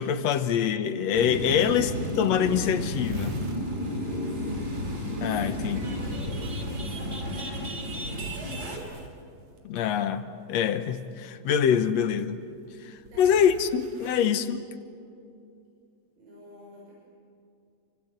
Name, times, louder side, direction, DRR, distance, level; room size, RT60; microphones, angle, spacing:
voice 1, 0.0-3.4 5.2-5.8 9.6-12.4 12.8-14.6, left 8 dB, 65° left, 10 dB, 1.9 m, -25 dB
sound 1, 1.1-8.8, left 1 dB, 25° right, 5.6 m, -32 dB
sound 2, 1.3-1.4 1.7-1.8 2.1-2.2 2.3-3.7 5.2-9.6 10.8-11.2 12.0-14.2, right 3 dB, 60° right, 3.4 m, -45 dB
voice 2, 3.8-4.7 5.7-8.9 13.1-13.3 14.0-14.3 16.2-16.9, right 1 dB, 85° right, -5 dB, 8.3 m, -46 dB
29.0 x 25.0 x 8.1 m, 2.5 s
omnidirectional pair, 3.8 m